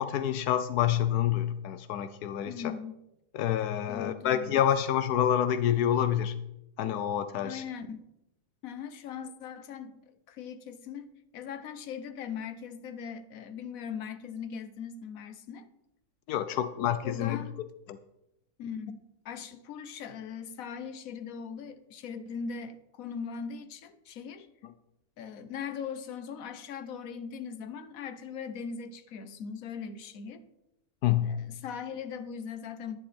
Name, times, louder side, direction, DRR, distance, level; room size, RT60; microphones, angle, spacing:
voice 1, 0.0-2.7 3.3-6.3 6.8-7.6 16.3-17.4 17.9-18.0 31.0-31.3, left 10 dB, 85° left, 12 dB, 1.2 m, -27 dB
voice 2, 2.5-3.0 3.9-4.6 7.4-8.0 8.6-10.0 10.3-15.7 16.5-16.7 17.0-17.6 18.6-24.5 25.2-30.4 31.2-33.0, left 6 dB, 65° left, 10 dB, 1.3 m, -40 dB
11.5 x 10.5 x 4.2 m, 0.86 s
omnidirectional pair, 1.6 m